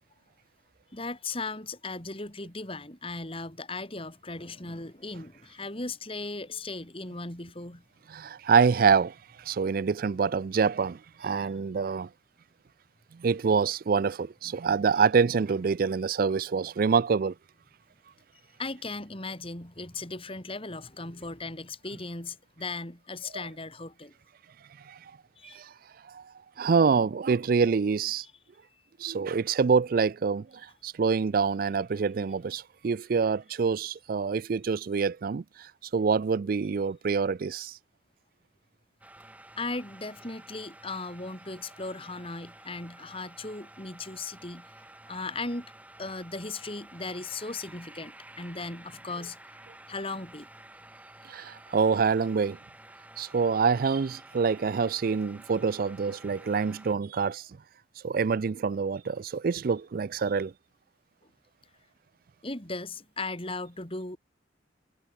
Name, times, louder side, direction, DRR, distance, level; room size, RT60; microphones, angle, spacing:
voice 1, 0.9-7.8 18.6-24.1 25.4-25.6 39.6-44.7 45.1-45.7 46.0-49.6 49.9-50.5 62.4-64.2, left 3 dB, 30° left, 3.8 m, -37 dB
voice 2, 8.1-12.1 13.1-17.3 24.9-25.0 25.5-25.7 26.1-26.2 26.6-28.3 29.0-37.8 51.3-52.6 53.2-57.5 58.0-60.5, right 5 dB, 50° right, 0.4 m, -26 dB
sound 1, 39.0-56.9, right 1 dB, 10° right, 3.3 m, -51 dB
head